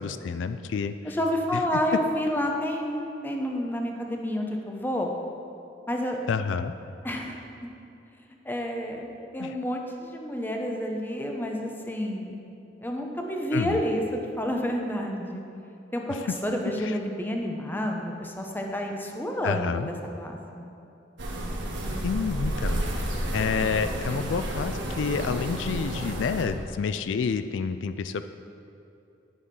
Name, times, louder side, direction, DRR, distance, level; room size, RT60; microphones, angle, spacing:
voice 1, 0.0-0.9 1.5-1.6 6.3-6.7 9.4-9.5 13.5-13.8 16.8-17.0 19.4-19.9 22.0-22.8 23.3-28.3, left 5 dB, 85° left, 11 dB, 0.4 m, -29 dB
voice 2, 1.0-5.1 5.9-6.2 7.0-7.7 8.4-12.5 12.8-15.4 15.9-20.6, equal, 10° left, 1 dB, 0.9 m, -30 dB
sound 1, 21.2-26.5, right 1 dB, 80° right, 1.4 m, -31 dB
10.5 x 6.4 x 5.4 m, 2.7 s
head